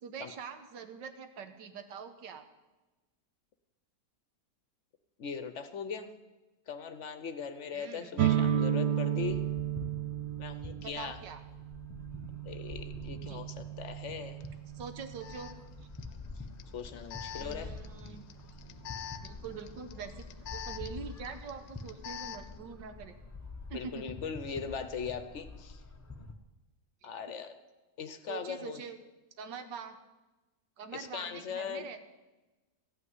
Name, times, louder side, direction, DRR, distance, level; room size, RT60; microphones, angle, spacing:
voice 1, 0.0-2.5 7.7-8.2 10.8-11.4 13.3-13.4 14.7-15.6 17.3-18.2 19.2-23.2 23.7-24.0 27.0-27.2 28.3-29.0 29.4-30.0 30.8-32.1, right 6 dB, 90° right, 8 dB, 1.8 m, -44 dB
voice 2, 5.2-6.1 6.7-9.5 10.4-11.2 12.4-14.4 16.7-17.7 23.7-25.8 27.0-27.5 28.0-28.8 30.9-31.9, left 6 dB, 55° left, 10 dB, 0.9 m, -39 dB
sound 1, 8.2-15.8, right 10 dB, 65° right, 1.1 m, -33 dB
sound 2, 9.2-26.3, left 3 dB, 20° left, 0.4 m, -47 dB
Alarm, 14.4-14.5 15.2-22.6, left 10 dB, 80° left, 1.3 m, -46 dB
15.0 x 5.9 x 9.6 m, 1.1 s
omnidirectional pair, 1.9 m